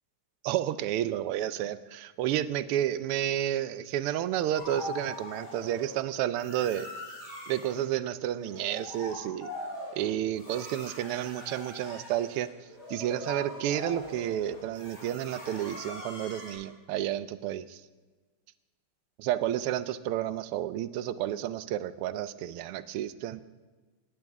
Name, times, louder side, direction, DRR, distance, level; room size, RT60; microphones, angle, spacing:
voice 1, 0.4-6.9 7.5-9.5 10.0-12.5 12.9-17.8 19.2-23.4, right 12 dB, 90° right, 14 dB, 1.5 m, -31 dB
sound 1, 4.5-6.0 6.4-7.8 8.3-16.5, left 1 dB, 65° left, 5.9 m, -42 dB
18.0 x 10.5 x 3.6 m, 1.3 s
omnidirectional pair, 2.4 m